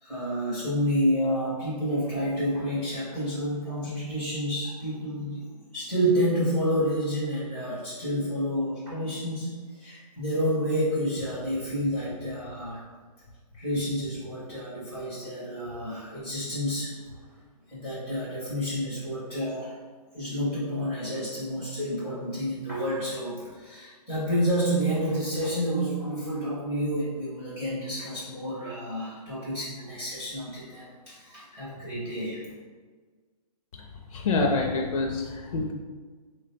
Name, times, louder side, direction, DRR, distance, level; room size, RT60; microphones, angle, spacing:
voice 1, 0.0-5.5 5.7-12.8 13.5-16.9 17.7-19.7 20.1-32.4, equal, 5° right, -11 dB, 0.5 m, -29 dB
voice 2, 33.7-35.7, left 3 dB, 55° left, 1 dB, 0.4 m, -27 dB
3.4 x 2.2 x 3.9 m, 1.5 s
hypercardioid pair, 170°, 20 cm